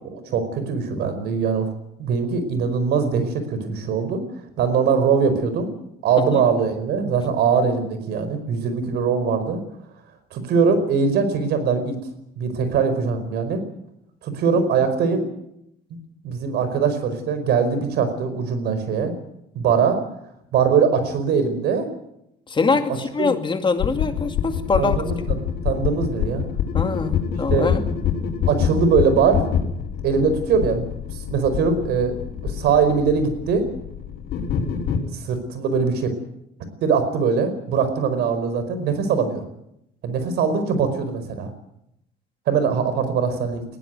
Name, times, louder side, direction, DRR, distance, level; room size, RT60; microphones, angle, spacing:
voice 1, 0.0-1.7 2.0-4.2 4.6-5.7 6.0-9.6 10.3-12.0 12.4-13.6 14.2-15.3 16.2-19.1 19.5-20.0 20.5-21.9 23.2-23.3 24.8-25.4 25.6-26.4 27.5-27.7 28.5-29.5 30.0-30.9 31.3-32.1 32.4-33.7 35.2-36.1 36.8-39.4 40.0-41.5 42.5-43.6, right 5 dB, 75° right, 10 dB, 5.0 m, -21 dB
voice 2, 22.5-25.0 26.7-27.8, left 4 dB, 30° left, 6 dB, 2.4 m, -23 dB
sound 1, 23.8-35.0, left 8 dB, 70° left, 5.5 m, -26 dB
21.0 x 16.5 x 9.4 m, 0.81 s
cardioid pair, 110°, 17 cm